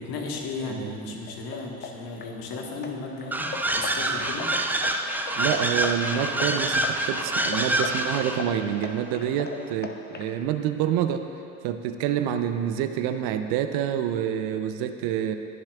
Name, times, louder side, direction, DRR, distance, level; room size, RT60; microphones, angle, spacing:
voice 1, 0.0-3.5 3.8-4.5, left 3 dB, 55° left, 0 dB, 1.7 m, -35 dB
voice 2, 0.7-1.2 5.3-11.2 11.6-15.4, right 10 dB, 55° right, 8 dB, 0.7 m, -27 dB
sound 1, 1.3-10.3, left 5 dB, 25° left, 0.8 m, -39 dB
sound 2, 3.3-8.5, right 1 dB, 5° right, 0.5 m, -26 dB
21.5 x 7.3 x 2.5 m, 2.6 s
figure-of-eight pair, 65°, 43 cm